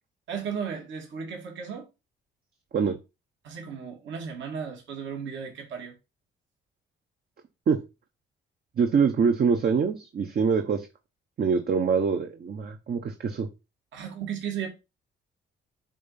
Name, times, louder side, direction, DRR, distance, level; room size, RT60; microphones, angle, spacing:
voice 1, 0.3-1.9 3.4-5.9 13.9-14.7, right 7 dB, 70° right, 2.1 m, -35 dB
voice 2, 8.8-10.9 11.4-13.5, right 6 dB, 50° right, 0.9 m, -24 dB
7.4 x 2.6 x 5.7 m
cardioid pair, 90°, 20 cm